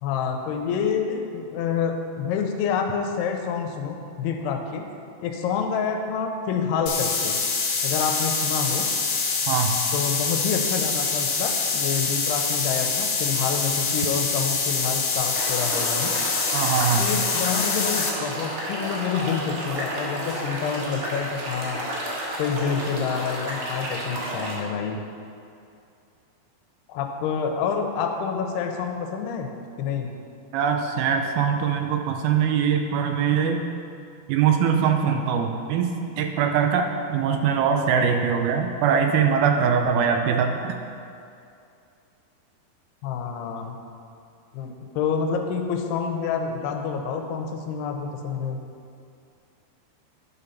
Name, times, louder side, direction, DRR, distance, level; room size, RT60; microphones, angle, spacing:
voice 1, 0.0-4.9 5.2-7.4 7.8-8.9 9.9-16.2 16.9-21.9 22.4-25.0 26.9-29.5 29.8-30.1 43.0-43.8 44.5-48.6, left 6 dB, 90° left, 4 dB, 2.8 m, -28 dB
sound 1, 6.9-18.1, left 4 dB, 65° left, 2.0 m, -25 dB
voice 2, 9.5-9.8 16.5-17.1 30.5-33.6 34.3-40.6, right 7 dB, 80° right, 5 dB, 2.3 m, -22 dB
sound 2, 15.3-24.6, right 1 dB, 60° right, 2.9 m, -32 dB
10.5 x 5.3 x 5.7 m, 2.5 s
omnidirectional pair, 4.6 m